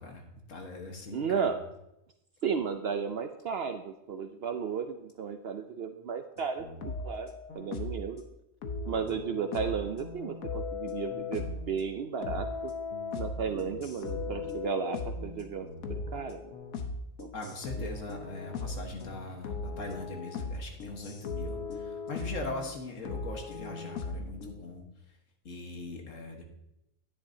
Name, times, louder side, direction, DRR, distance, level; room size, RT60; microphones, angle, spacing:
voice 1, 0.0-1.6 17.3-25.2 25.5-26.4, left 2 dB, 65° left, 3 dB, 1.8 m, -41 dB
voice 2, 1.1-1.6 2.4-8.2 8.9-12.7 13.2-15.7 16.1-16.5 17.2-17.3 17.8-17.9, right 6 dB, 60° right, 7 dB, 0.7 m, -34 dB
sound 1, 6.4-8.1 8.6-11.9 12.2-22.7 23.1-24.7, left 3 dB, 85° left, 1.4 m, -38 dB
10.5 x 9.9 x 2.8 m, 0.86 s
omnidirectional pair, 1.4 m